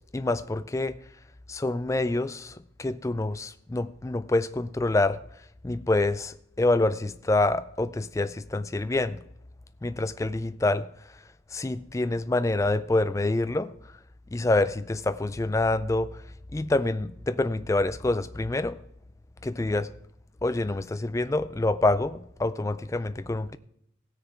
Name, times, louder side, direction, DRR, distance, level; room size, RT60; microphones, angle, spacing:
voice 1, 0.1-1.0 1.5-5.2 5.6-9.2 9.8-10.9 11.5-13.7 14.3-16.2 16.5-18.8 19.4-19.9 20.4-23.6, left 2 dB, 15° left, 0.3 m, -26 dB
16.5 x 6.6 x 4.8 m
head